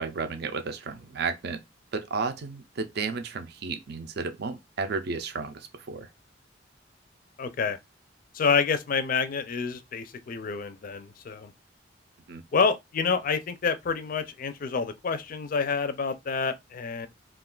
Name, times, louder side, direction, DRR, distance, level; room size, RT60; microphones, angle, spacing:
voice 1, 0.0-1.6 1.9-6.1 12.3-12.4, right 4 dB, 60° right, 0.5 m, -33 dB
voice 2, 7.4-7.8 8.3-11.5 12.5-17.1, left 5 dB, 50° left, 0.4 m, -28 dB
2.4 x 2.3 x 3.7 m
head